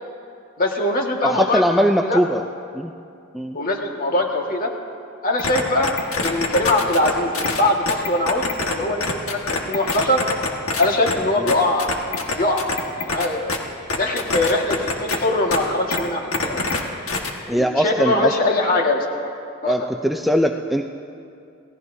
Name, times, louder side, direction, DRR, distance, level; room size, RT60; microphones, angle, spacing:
voice 1, 0.6-2.2 3.5-4.7 5.2-5.9 6.2-10.2 10.8-11.9 12.4-12.6 13.0-13.5 14.0-16.6 17.6-19.1 19.6-19.7, left 2 dB, 45° left, 0 dB, 1.8 m, -22 dB
voice 2, 1.2-2.4 2.7-2.9 3.3-3.6 11.4-11.5 17.5-18.3 19.7-20.8, equal, ahead, 3 dB, 0.4 m, -20 dB
sound 1, 5.4-8.8 9.0-11.1 11.5-13.6 13.9-15.2 15.5-15.6 15.9-16.0 16.3-16.8 17.1-17.3, left 3 dB, 90° left, 1.6 m, -24 dB
28.5 x 17.0 x 2.7 m, 2.5 s
head